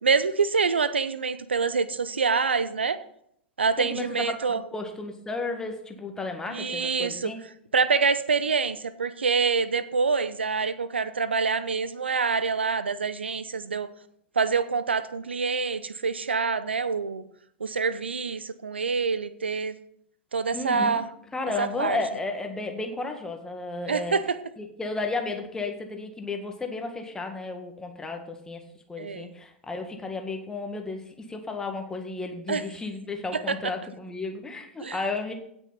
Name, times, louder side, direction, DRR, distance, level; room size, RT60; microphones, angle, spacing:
voice 1, 0.0-3.0 3.6-4.6 6.5-7.3 7.7-13.9 14.4-17.2 17.6-19.8 20.3-21.1 21.6-22.0 23.9-24.4 29.0-29.3 32.5-32.6 33.3-33.6 34.8-35.0, right 5 dB, 75° right, 15 dB, 0.6 m, -26 dB
voice 2, 3.8-7.4 20.5-21.0 21.3-24.2 24.6-28.6 28.9-35.3, left 3 dB, 10° left, 4 dB, 1.8 m, -33 dB
16.5 x 6.3 x 4.2 m, 0.70 s
figure-of-eight pair, 95°, 6 cm